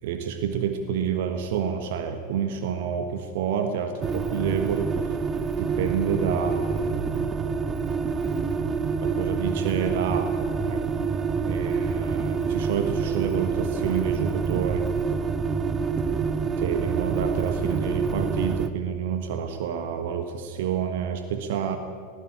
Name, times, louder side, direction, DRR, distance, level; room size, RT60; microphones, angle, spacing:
voice 1, 0.0-5.1 5.6-7.3 9.0-10.3 10.6-10.8 11.4-14.9 16.6-21.8, right 8 dB, 55° right, 7 dB, 1.4 m, -28 dB
sound 1, 4.0-18.7, right 5 dB, 20° right, 1.0 m, -27 dB
19.0 x 15.5 x 8.9 m, 2.3 s
figure-of-eight pair, 90°, 0 cm